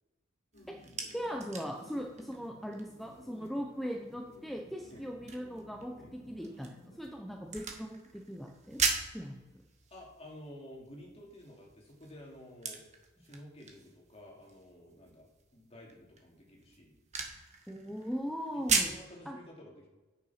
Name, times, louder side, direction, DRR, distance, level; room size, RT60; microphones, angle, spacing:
sound 1, 0.5-7.0, left 1 dB, 45° left, 1.9 m, -56 dB
sound 2, 0.5-19.1, right 5 dB, 35° right, 1.4 m, -40 dB
voice 1, 1.1-6.7 7.0-8.8 9.1-9.4 13.2-13.3 17.7-18.9 19.3-19.4, equal, ahead, 1 dB, 0.8 m, -39 dB
voice 2, 9.9-12.8 13.2-17.0 18.5-19.9, left 1 dB, 30° left, -1 dB, 2.7 m, -52 dB
9.4 x 6.9 x 5.8 m, 1.2 s
head